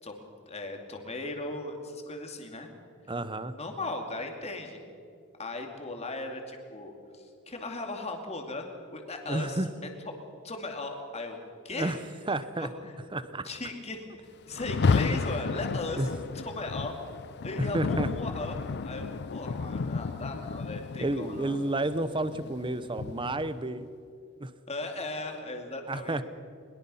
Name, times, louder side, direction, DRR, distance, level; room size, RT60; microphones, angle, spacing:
voice 1, 0.0-2.7 3.6-4.8 5.4-8.7 8.9-9.9 10.4-11.4 11.6-12.0 12.6-13.0 13.4-16.0 16.3-16.9 17.4-21.6 24.7-26.2, left 2 dB, 30° left, 3 dB, 2.5 m, -37 dB
voice 2, 3.1-3.5 9.3-9.7 11.7-12.0 12.3-12.7 13.1-13.5 16.0-16.1 17.7-18.1 21.0-23.9 24.4-24.5 25.9-26.2, right 2 dB, 20° right, 13 dB, 0.8 m, -30 dB
Rain, 14.5-23.6, left 4 dB, 50° left, 0.5 m, -32 dB
22.0 x 21.5 x 5.6 m, 2.4 s
head